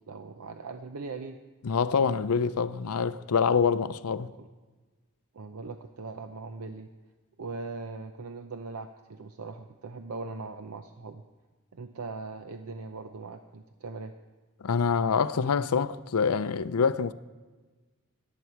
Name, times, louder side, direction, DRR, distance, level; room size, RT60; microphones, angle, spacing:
voice 1, 0.0-1.4 4.3-4.5 5.3-6.9 7.4-11.2 11.7-14.1, right 3 dB, 70° right, 0.7 m, -40 dB
voice 2, 1.6-4.3 14.6-17.1, left 5 dB, 85° left, 0.5 m, -26 dB
20.5 x 8.4 x 4.6 m
head